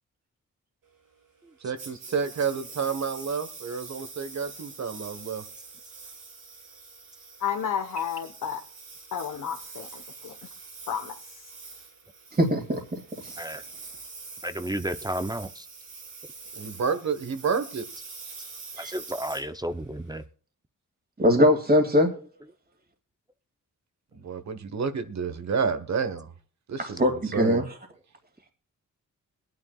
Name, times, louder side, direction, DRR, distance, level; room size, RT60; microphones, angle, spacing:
voice 1, 1.6-5.4 16.6-17.9 24.1-26.3 26.7-27.0 27.3-27.6, right 5 dB, 55° right, 1.2 m, -30 dB
Engine, 1.8-20.2, right 4 dB, 90° right, 6.7 m, -45 dB
voice 2, 7.4-8.6 9.1-10.3 10.9-11.1, left 8 dB, 75° left, 1.1 m, -31 dB
voice 3, 12.4-13.0 18.8-18.9 21.2-22.1 26.8-27.7, left 1 dB, 30° right, 2.2 m, -22 dB
voice 4, 14.4-15.7 18.8-20.2, right 1 dB, 10° right, 0.5 m, -32 dB
22.0 x 9.5 x 2.3 m
cardioid pair, 80°, 32 cm